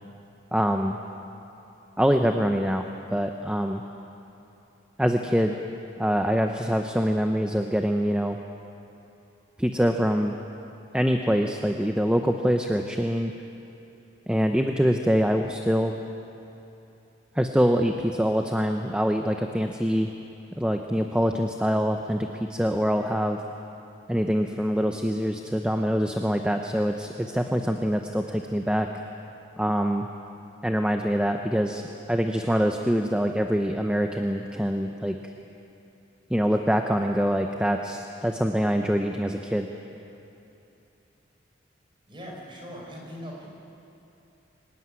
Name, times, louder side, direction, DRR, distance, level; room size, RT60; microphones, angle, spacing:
voice 1, 0.5-1.0 2.0-3.8 5.0-5.5 6.0-8.4 9.6-10.4 10.9-13.3 14.3-15.9 17.3-20.1 20.6-23.4 24.1-28.9 29.6-30.1 30.6-31.8 32.1-35.2 36.3-39.7, equal, 5° right, 4 dB, 0.7 m, -24 dB
voice 2, 42.1-43.5, equal, 25° right, -1 dB, 4.6 m, -40 dB
25.0 x 14.0 x 9.6 m, 2.9 s
head